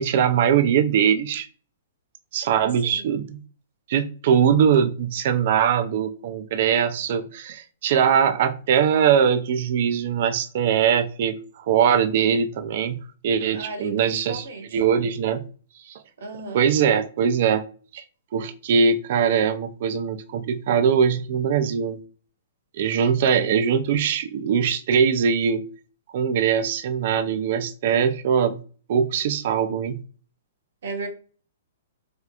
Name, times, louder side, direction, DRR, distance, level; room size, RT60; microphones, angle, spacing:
voice 1, 0.0-1.5 2.3-3.4 3.9-11.4 11.7-13.0 13.2-14.4 14.7-15.4 15.8-16.0 16.5-17.6 17.9-18.0 18.3-22.0 22.8-25.6 26.1-28.6 28.9-29.9, right 7 dB, 55° right, 8 dB, 0.4 m, -21 dB
voice 2, 13.5-14.8 16.2-16.6 30.8-31.1, right 3 dB, 75° right, 3 dB, 1.3 m, -35 dB
4.3 x 2.3 x 2.3 m, 0.39 s
hypercardioid pair, 150°, 0 cm